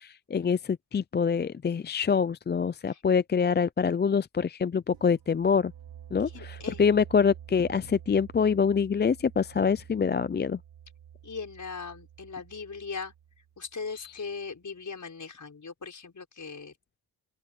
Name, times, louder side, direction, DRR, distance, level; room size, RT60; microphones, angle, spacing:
voice 1, 0.0-5.7 6.1-10.6 14.0-14.1, left 6 dB, 25° left, 0.4 m, -25 dB
sound 1, 4.9-14.5, right 10 dB, 90° right, 4.4 m, -49 dB
voice 2, 6.3-7.0 11.2-13.1 13.6-16.7, left 5 dB, 45° left, 6.1 m, -39 dB
open air
cardioid pair, 70°, 43 cm